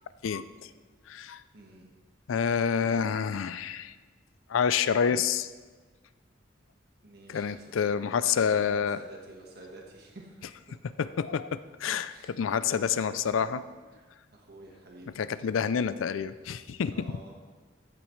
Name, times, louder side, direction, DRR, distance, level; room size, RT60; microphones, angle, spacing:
voice 1, 0.2-0.7 1.1-1.4 2.3-3.9 4.5-5.5 7.3-9.0 11.0-13.6 15.2-17.1, left 7 dB, 85° left, 14 dB, 0.4 m, -28 dB
voice 2, 1.5-1.9 7.0-10.8 12.1-12.3 12.7-13.5 13.9-14.0 14.3-15.2 16.9-17.3, right 2 dB, 50° right, -1 dB, 1.4 m, -49 dB
14.5 x 9.0 x 3.2 m, 1.4 s
head